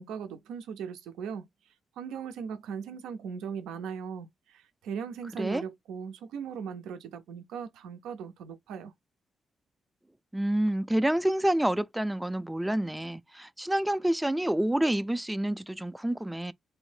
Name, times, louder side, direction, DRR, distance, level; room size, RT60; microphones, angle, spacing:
voice 1, 0.0-1.5 2.0-8.9, right 7 dB, 90° right, 0.4 m, -38 dB
voice 2, 10.3-16.5, right 1 dB, 10° right, 0.4 m, -28 dB
2.6 x 2.0 x 3.2 m
supercardioid pair, 55°, 0 cm